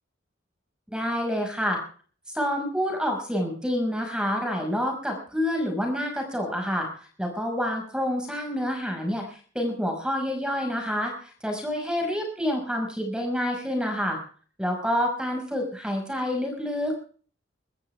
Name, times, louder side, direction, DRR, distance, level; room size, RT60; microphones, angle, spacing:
voice 1, 0.9-1.8 2.3-14.2 14.6-16.9, equal, 5° right, 3 dB, 5.7 m, -28 dB
24.0 x 14.0 x 3.5 m, 0.43 s
head